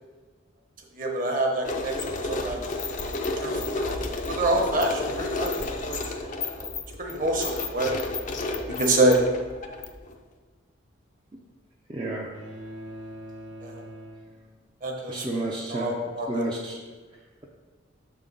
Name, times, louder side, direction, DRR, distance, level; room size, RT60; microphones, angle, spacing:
voice 1, 1.0-1.9 2.3-2.6 3.4-3.9 4.3-5.5 5.9-6.0 6.6-6.7 7.0-8.0 8.8-9.2 13.6-13.8 14.8-15.3 15.7-16.4, right 2 dB, 40° right, 1 dB, 1.0 m, -26 dB
sound 1, 1.6-10.2, left 2 dB, 40° left, 0.5 m, -31 dB
voice 2, 11.9-12.3 15.1-15.9 16.3-16.8, right 2 dB, 25° right, -3 dB, 0.5 m, -30 dB
sound 2, 12.3-14.9, equal, 80° right, 1.0 m, -43 dB
6.6 x 3.7 x 5.3 m, 1.4 s
head